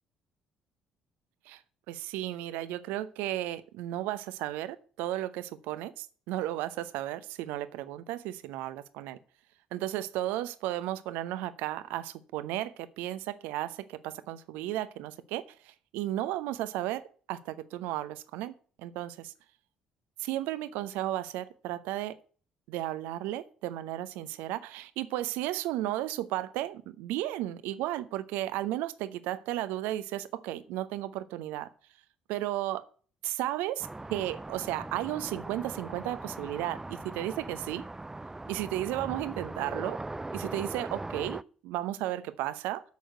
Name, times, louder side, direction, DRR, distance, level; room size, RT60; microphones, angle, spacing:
voice 1, 1.9-9.2 9.7-17.0 17.3-19.3 20.2-22.2 22.7-31.7 32.3-32.8 33.2-37.8 38.5-40.0 40.3-42.8, right 14 dB, 70° right, 14 dB, 0.8 m, -34 dB
sound 1, 33.8-41.4, right 2 dB, 15° right, 0.4 m, -40 dB
8.2 x 6.4 x 7.9 m, 0.42 s
figure-of-eight pair, 50°, 3 cm